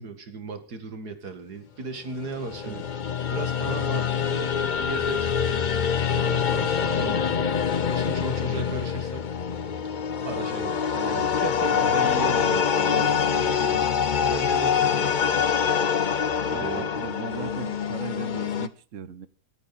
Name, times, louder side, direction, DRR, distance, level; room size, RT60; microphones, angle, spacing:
voice 1, 0.0-2.9 3.3-7.5 7.9-9.3 10.2-13.9 14.2-15.3 16.5-16.9, right 4 dB, 70° right, 8 dB, 2.6 m, -36 dB
sound 1, 2.2-18.7, left 7 dB, 45° left, 0.6 m, -25 dB
voice 2, 10.9-11.3 11.7-12.5 14.7-15.2 16.5-19.3, right 9 dB, 55° right, 15 dB, 1.2 m, -39 dB
24.5 x 9.7 x 4.2 m, 0.35 s
omnidirectional pair, 1.7 m